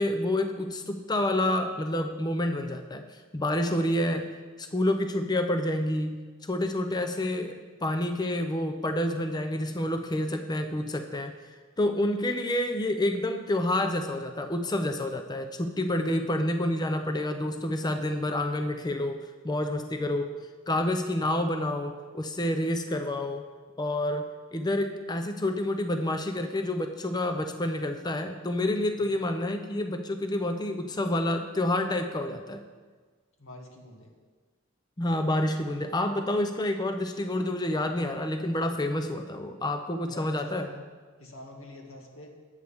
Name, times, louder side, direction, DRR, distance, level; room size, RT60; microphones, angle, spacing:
voice 1, 0.0-4.3 4.6-11.3 11.8-20.3 20.7-23.5 23.8-32.6 35.0-40.7, left 1 dB, 20° left, 6 dB, 0.6 m, -28 dB
voice 2, 33.4-34.1 40.0-40.8 41.2-42.3, left 2 dB, 90° left, 0 dB, 2.1 m, -47 dB
20.0 x 8.1 x 3.5 m, 1.4 s
head